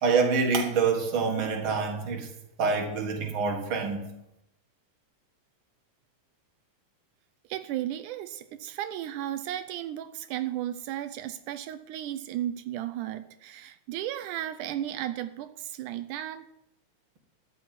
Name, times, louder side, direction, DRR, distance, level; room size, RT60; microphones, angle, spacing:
voice 1, 0.0-2.3 2.6-4.1, right 5 dB, 45° right, 2.4 m, -26 dB
voice 2, 7.5-16.5, right 12 dB, 85° right, 2.1 m, -34 dB
14.0 x 5.6 x 9.5 m
omnidirectional pair, 3.6 m